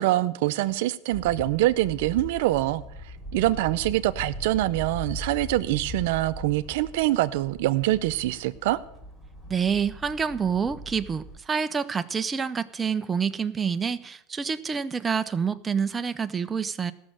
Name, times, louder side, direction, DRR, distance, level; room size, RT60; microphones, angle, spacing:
voice 1, 0.0-2.8 3.3-8.8, right 16 dB, 75° right, 13 dB, 0.5 m, -24 dB
sound 1, 1.1-11.4, left 1 dB, 15° left, 2.5 m, -40 dB
voice 2, 9.5-16.9, right 6 dB, 20° right, 10 dB, 0.5 m, -27 dB
14.5 x 6.3 x 7.5 m, 0.75 s
supercardioid pair, 120°, 0 cm